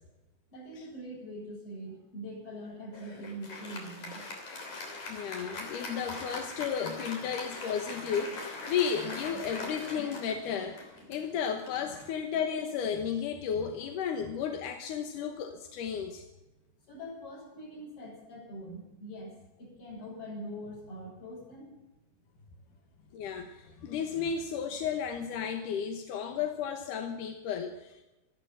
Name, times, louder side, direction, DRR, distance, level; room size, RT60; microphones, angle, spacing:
voice 1, 0.5-4.2 11.8-11.9 16.8-21.8 22.3-22.5, equal, 45° left, -3 dB, 8.0 m, -43 dB
Applause, 2.9-12.7, left 2 dB, 65° left, 4.6 m, -42 dB
voice 2, 5.1-16.2 23.1-28.0, left 7 dB, 85° left, 5 dB, 2.7 m, -33 dB
13.5 x 13.0 x 7.4 m, 0.99 s
omnidirectional pair, 3.6 m